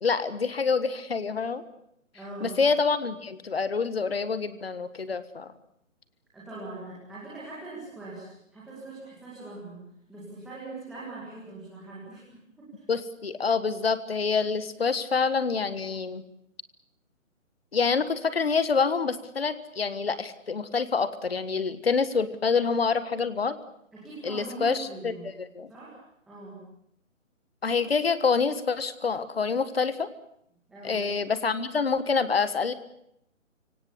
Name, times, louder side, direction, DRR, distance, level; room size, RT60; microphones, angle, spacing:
voice 1, 0.0-1.6 2.4-5.5 12.9-16.2 17.7-23.6 24.2-25.7 27.6-30.1 30.8-32.7, left 5 dB, 50° left, 14 dB, 1.6 m, -27 dB
voice 2, 2.1-2.6 6.3-9.8 10.1-12.8 23.9-25.3 25.7-26.0 26.3-26.6 30.7-31.0, right 3 dB, ahead, -9 dB, 2.2 m, -42 dB
24.5 x 17.5 x 9.7 m, 0.76 s
hypercardioid pair, 180°, 40 cm